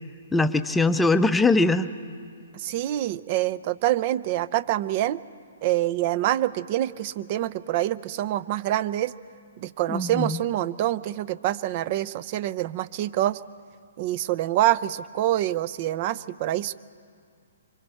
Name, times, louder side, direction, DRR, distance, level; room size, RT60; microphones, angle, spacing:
voice 1, 0.3-1.9 9.9-10.4, left 2 dB, 5° left, 10 dB, 0.6 m, -21 dB
voice 2, 2.5-5.2 5.6-9.1 9.6-13.4 14.0-16.7, right 14 dB, 40° right, 18 dB, 0.6 m, -26 dB
27.0 x 24.5 x 4.4 m, 2.2 s
hypercardioid pair, 135°, 0 cm